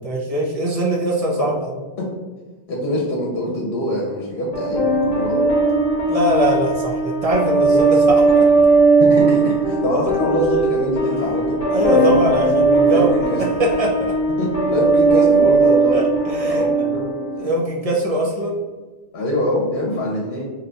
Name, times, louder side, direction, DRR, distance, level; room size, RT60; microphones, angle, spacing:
voice 1, 0.0-1.7 6.1-8.5 11.7-13.1 13.4-14.2 15.9-16.7 17.4-18.6, right 1 dB, 45° right, -2 dB, 0.5 m, -22 dB
voice 2, 2.7-5.5 9.0-11.6 11.9-12.3 12.8-13.4 14.4-16.0 16.5-17.1 19.1-20.4, left 1 dB, 75° left, -3 dB, 0.9 m, -23 dB
sound 1, 4.5-17.6, right 3 dB, 40° left, 0.8 m, -18 dB
2.7 x 2.2 x 3.8 m, 1.3 s
omnidirectional pair, 1.1 m